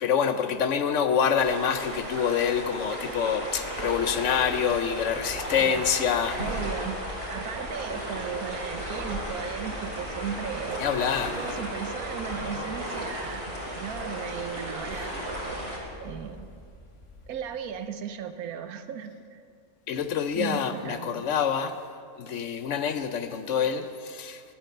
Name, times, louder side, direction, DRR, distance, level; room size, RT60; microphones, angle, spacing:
voice 1, 0.0-6.4 10.8-11.4 19.9-21.8 22.2-24.4, left 7 dB, 65° left, 10 dB, 0.9 m, -26 dB
sound 1, 1.4-15.8, right 1 dB, 40° right, 3.5 m, -35 dB
sound 2, 3.5-17.8, left 2 dB, 20° left, 1.3 m, -46 dB
voice 2, 6.4-7.0 7.3-10.8 11.3-13.5 13.7-15.5 16.0-16.5 17.3-19.4 20.3-21.3, right 8 dB, 80° right, 10 dB, 1.2 m, -36 dB
13.0 x 9.0 x 6.7 m, 2.2 s
omnidirectional pair, 1.5 m